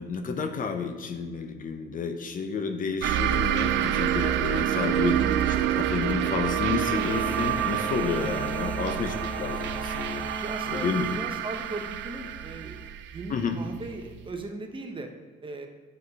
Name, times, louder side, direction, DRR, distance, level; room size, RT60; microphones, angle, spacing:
voice 1, 0.0-5.2 5.8-10.2 10.7-11.1 13.3-13.6, left 5 dB, 45° left, 6 dB, 0.7 m, -30 dB
sound 1, 3.0-14.2, right 11 dB, 75° right, 0.4 m, -28 dB
sound 2, 5.0-12.9, equal, 5° left, 1.0 m, -39 dB
voice 2, 5.2-5.7 8.2-8.5 10.4-12.8 13.1-15.1 15.4-15.7, right 3 dB, 25° right, 4 dB, 0.8 m, -38 dB
7.6 x 4.3 x 5.3 m, 1.4 s
cardioid pair, 105°, 19 cm